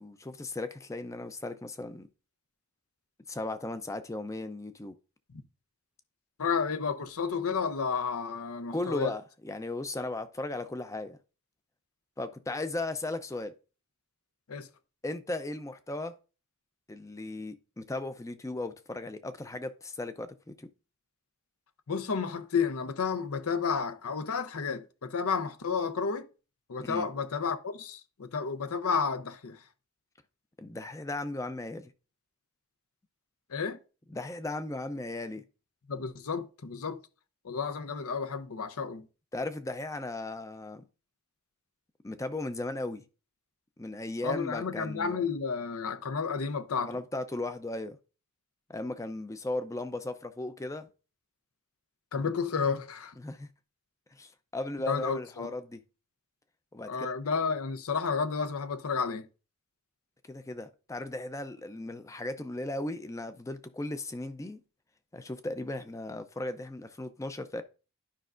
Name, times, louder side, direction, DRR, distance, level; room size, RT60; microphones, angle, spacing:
voice 1, 0.0-2.1 3.3-4.9 8.7-11.2 12.2-13.5 15.0-16.1 16.9-20.7 26.8-27.1 30.6-31.9 34.1-35.4 39.3-40.9 42.0-43.0 43.8-45.3 46.8-48.0 48.7-50.9 53.2-53.5 54.1-55.8 56.7-57.1 60.2-64.6 65.1-67.6, left 2 dB, 15° left, 0.4 m, -36 dB
voice 2, 6.4-9.1 14.5-14.7 21.9-26.3 26.7-29.6 33.5-33.8 35.9-37.0 37.4-39.1 44.2-47.0 52.1-53.1 54.9-55.5 56.9-59.2, left 5 dB, 75° left, 0.7 m, -31 dB
11.5 x 5.3 x 2.5 m
head